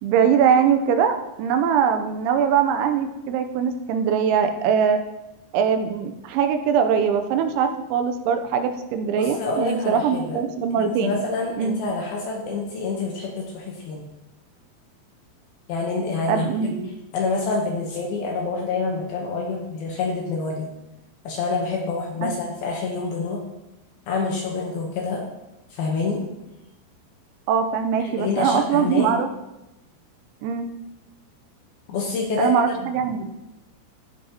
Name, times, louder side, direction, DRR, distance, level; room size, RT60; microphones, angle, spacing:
voice 1, 0.0-5.0 5.5-11.2 11.6-11.8 16.3-16.9 22.2-22.3 27.5-29.3 30.4-30.7 32.4-33.2, right 7 dB, 85° right, 7 dB, 3.0 m, -22 dB
voice 2, 9.2-10.4 10.8-14.1 15.7-16.5 17.1-20.7 21.2-23.4 24.1-25.2 25.7-26.2 28.0-29.1 31.9-32.5, left 3 dB, 75° left, -1 dB, 2.4 m, -27 dB
15.0 x 5.1 x 2.8 m, 0.95 s
omnidirectional pair, 5.2 m